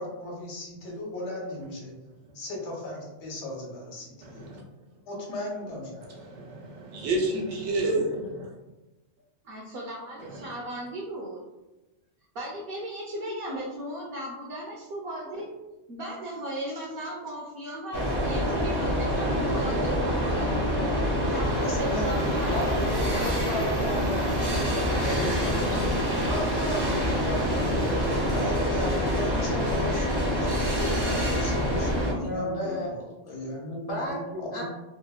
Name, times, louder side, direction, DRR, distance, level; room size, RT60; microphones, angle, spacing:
voice 1, 0.0-1.9 2.3-4.5 5.1-6.3 21.6-22.6 28.3-34.6, left 1 dB, 75° left, -2 dB, 1.1 m, -37 dB
voice 2, 4.2-4.6 6.1-8.5 10.3-10.4, right 2 dB, 80° right, -1 dB, 0.9 m, -30 dB
voice 3, 9.4-11.4 12.3-15.5 15.9-20.6 21.3-22.7, right 1 dB, 65° right, -4 dB, 0.7 m, -36 dB
sound 1, 17.9-32.1, equal, 35° right, 0.4 m, -26 dB
voice 4, 22.5-28.2 32.2-32.9 33.9-34.2 34.5-34.6, equal, 55° left, -4 dB, 0.8 m, -34 dB
2.8 x 2.0 x 2.3 m, 1.0 s
omnidirectional pair, 1.2 m